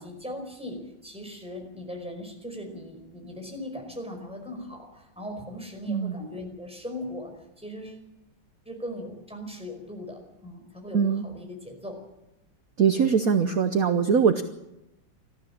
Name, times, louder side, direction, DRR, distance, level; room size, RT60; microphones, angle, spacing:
voice 1, 0.0-8.0 8.6-12.0, left 1 dB, 5° right, 2 dB, 4.9 m, -39 dB
voice 2, 5.9-6.2 10.9-11.2 12.8-14.4, right 6 dB, 55° right, 8 dB, 1.2 m, -22 dB
20.0 x 14.0 x 9.9 m, 0.90 s
omnidirectional pair, 2.1 m